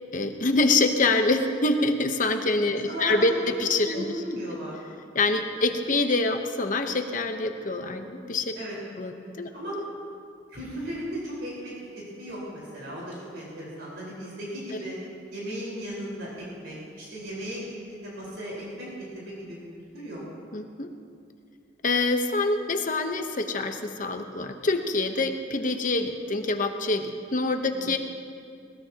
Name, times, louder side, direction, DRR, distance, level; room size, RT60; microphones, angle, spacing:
voice 1, 0.1-4.1 4.3-4.4 5.1-8.5 9.0-9.5 20.5-20.9 21.8-28.0, left 2 dB, 45° left, 6 dB, 1.0 m, -25 dB
voice 2, 2.7-3.2 3.8-4.8 8.5-8.8 9.2-9.8 10.5-11.7 12.1-14.9 15.3-18.9 19.1-19.6 19.9-20.2 27.7-27.9, equal, 70° right, -6 dB, 4.6 m, -36 dB
20.5 x 19.0 x 2.9 m, 2.3 s
head